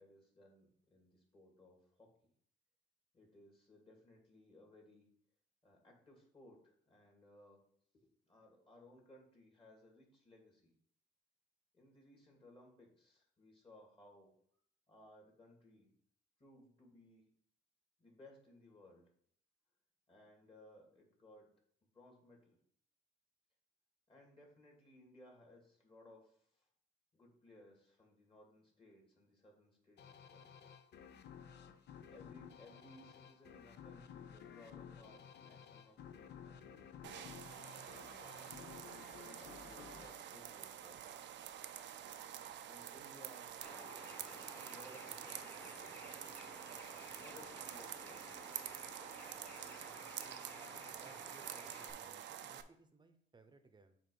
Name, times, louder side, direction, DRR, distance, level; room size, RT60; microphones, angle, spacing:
voice 1, 0.0-2.3 3.1-5.1 5.6-7.6 8.2-10.7 11.7-14.3 14.9-15.9 16.4-17.3 18.0-19.1 20.1-21.5 21.9-22.6 24.1-26.7 27.1-30.5 32.1-37.5 38.1-38.6 39.3-41.0 42.6-43.5 44.5-46.3 47.2-48.4, left 1 dB, 25° left, 0 dB, 2.1 m, -62 dB
sound 1, 30.0-41.2, left 8 dB, 60° left, 0.6 m, -55 dB
sound 2, 37.0-52.6, right 10 dB, 65° right, 0.5 m, -48 dB
Bird, 43.6-51.9, left 1 dB, 10° left, 1.2 m, -55 dB
voice 2, 51.0-54.0, right 3 dB, 20° right, 8 dB, 0.8 m, -63 dB
7.3 x 2.7 x 5.3 m, 0.64 s
cardioid pair, 90°, 20 cm